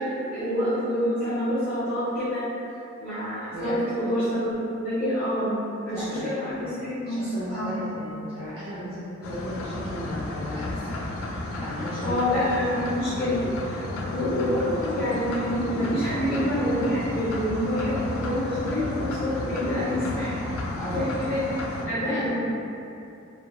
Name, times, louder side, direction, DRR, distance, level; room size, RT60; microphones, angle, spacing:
voice 1, 0.0-2.4 3.0-5.5 5.8-7.7 12.0-13.4 13.7-13.8 14.1-20.3 20.9-21.6 21.8-22.3, equal, 25° left, -15 dB, 0.6 m, -27 dB
voice 2, 5.9-12.2 12.6-12.7 20.8-21.1 21.8-22.3, equal, 45° right, -14 dB, 0.7 m, -36 dB
sound 1, 9.2-21.9, left 2 dB, 85° left, 0.3 m, -33 dB
3.0 x 2.2 x 2.3 m, 2.7 s
head